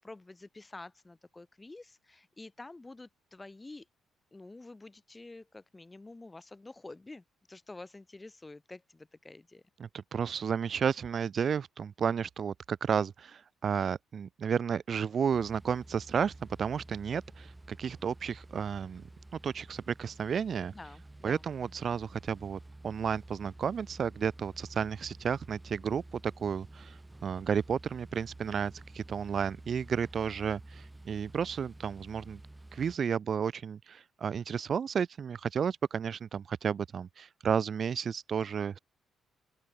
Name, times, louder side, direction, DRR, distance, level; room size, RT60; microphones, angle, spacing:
voice 1, 0.0-3.9 4.3-9.6 20.7-21.5, left 2 dB, 15° left, 2.1 m, -49 dB
voice 2, 9.8-16.3 16.6-19.0 19.4-20.7 21.2-32.4 32.7-38.8, right 7 dB, 45° right, 0.4 m, -32 dB
sound 1, 15.3-33.0, right 2 dB, 10° right, 4.1 m, -51 dB
open air
cardioid pair, 125°, 0 cm